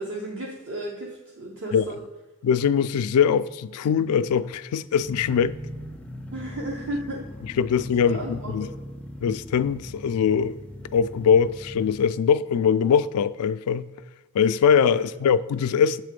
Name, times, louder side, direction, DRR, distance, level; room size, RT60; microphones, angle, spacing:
voice 1, 0.0-2.0 6.3-7.3 8.0-8.8 14.9-15.0, right 1 dB, 60° right, 0.9 m, -34 dB
voice 2, 2.4-5.6 7.6-8.7 9.2-10.6 10.9-13.9 14.3-16.0, left 7 dB, 85° left, 0.3 m, -22 dB
sound 1, 5.0-12.1, equal, 5° left, 0.4 m, -39 dB
7.4 x 3.5 x 5.1 m
head